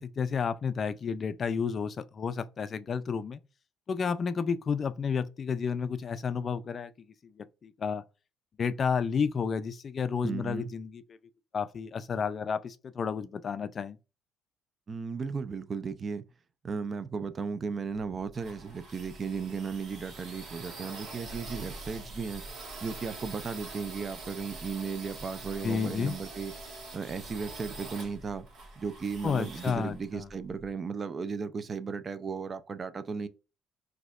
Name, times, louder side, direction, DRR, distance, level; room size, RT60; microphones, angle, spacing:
voice 1, 0.0-3.4 3.9-6.9 7.4-8.0 8.6-11.0 11.5-14.0 25.6-26.2 29.2-30.3, left 6 dB, 40° left, 0.3 m, -31 dB
voice 2, 10.2-10.7 14.9-16.3 16.6-22.4 22.8-26.5 26.9-28.5 28.8-33.3, right 5 dB, 35° right, 0.3 m, -35 dB
sound 1, 17.9-30.7, right 3 dB, 65° right, 1.4 m, -44 dB
4.0 x 2.7 x 2.4 m
cardioid pair, 95°, 0 cm